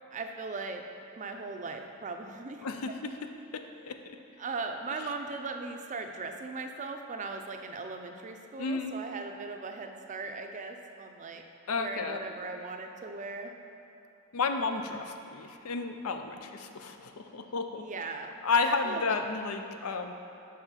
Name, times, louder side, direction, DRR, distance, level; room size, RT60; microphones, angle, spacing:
voice 1, 0.1-0.8 1.2-2.7 4.4-11.4 11.8-13.5 17.8-18.3 18.7-19.2, right 3 dB, 35° right, 4 dB, 0.4 m, -38 dB
voice 2, 2.6-3.1 3.5-4.0 8.6-8.9 11.7-12.2 14.3-17.8 18.4-20.1, left 4 dB, 80° left, 6 dB, 0.5 m, -32 dB
5.6 x 5.0 x 5.7 m, 3.0 s
head